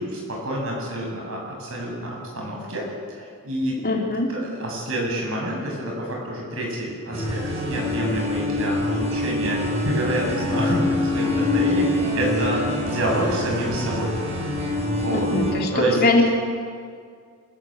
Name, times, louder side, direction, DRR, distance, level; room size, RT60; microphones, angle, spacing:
voice 1, 0.0-3.8 4.3-14.2 14.6-15.3 15.7-16.0, right 1 dB, 65° right, -1 dB, 7.7 m, -28 dB
voice 2, 3.8-4.3 15.1-16.3, left 2 dB, 45° left, 0 dB, 3.5 m, -21 dB
sound 1, 7.1-15.5, left 1 dB, 30° right, 6.8 m, -25 dB
27.5 x 15.5 x 7.9 m, 2.1 s
head